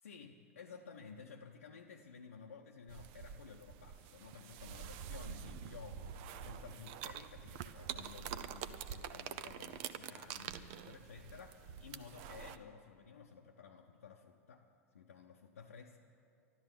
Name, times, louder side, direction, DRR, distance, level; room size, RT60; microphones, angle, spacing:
voice 1, 0.0-14.6 14.9-16.0, left 6 dB, 70° left, 0 dB, 0.7 m, -54 dB
sound 1, 2.9-12.6, right 9 dB, 45° right, 0.6 m, -47 dB
13.0 x 12.0 x 7.4 m, 2.5 s
figure-of-eight pair, 90°, 8 cm